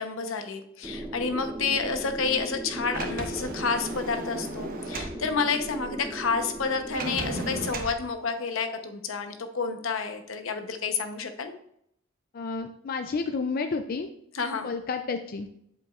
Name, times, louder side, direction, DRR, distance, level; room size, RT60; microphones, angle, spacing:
voice 1, 0.0-11.5 14.3-14.7, left 5 dB, 80° left, 7 dB, 0.9 m, -30 dB
sound 1, 0.8-7.7, right 1 dB, 15° right, 0.8 m, -37 dB
Sliding door, 2.9-5.2 6.9-8.0, right 2 dB, 45° right, 0.9 m, -35 dB
voice 2, 12.3-14.1 14.6-15.5, left 4 dB, 45° left, 7 dB, 0.4 m, -30 dB
8.4 x 7.4 x 2.4 m, 0.72 s
head